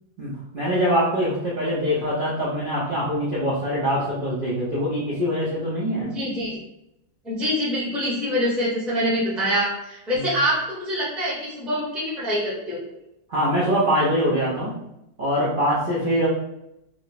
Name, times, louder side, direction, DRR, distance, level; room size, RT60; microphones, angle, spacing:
voice 1, 0.2-6.1 10.1-10.3 13.3-14.8 15.2-16.3, equal, 50° right, -8 dB, 0.6 m, -23 dB
voice 2, 6.0-6.6 7.2-12.9, equal, ahead, -6 dB, 0.6 m, -25 dB
3.4 x 2.0 x 4.0 m, 0.83 s
omnidirectional pair, 2.0 m